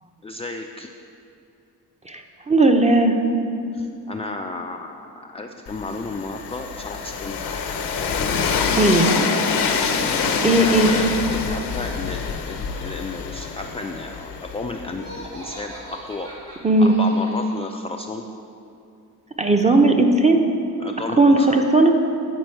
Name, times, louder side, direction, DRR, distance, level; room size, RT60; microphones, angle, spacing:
voice 1, 0.2-0.9 3.7-7.4 8.2-8.9 10.4-16.3 16.8-18.2 20.8-21.7, left 3 dB, 15° left, 3 dB, 0.3 m, -33 dB
voice 2, 2.0-3.2 8.8-9.2 10.4-10.9 16.6-16.9 19.4-20.4 21.2-21.9, right 2 dB, 15° right, 4 dB, 0.7 m, -16 dB
Train, 5.7-15.5, left 5 dB, 80° left, 0.8 m, -26 dB
Laughter, 14.9-17.7, equal, 80° right, 1.4 m, -40 dB
9.3 x 4.3 x 4.5 m, 2.6 s
supercardioid pair, 60°, 40 cm